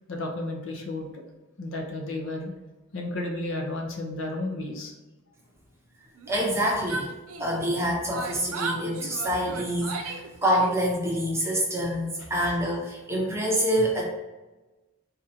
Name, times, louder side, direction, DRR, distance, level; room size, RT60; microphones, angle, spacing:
voice 1, 0.1-1.2 1.6-2.5 2.9-4.9, left 2 dB, 60° left, 0 dB, 0.8 m, -32 dB
Yell, 6.2-7.8 8.1-10.9, right 3 dB, 80° right, 0.5 m, -36 dB
voice 2, 6.3-7.1 7.4-14.0, equal, 10° right, -3 dB, 0.8 m, -26 dB
4.2 x 2.5 x 4.1 m, 1.1 s
head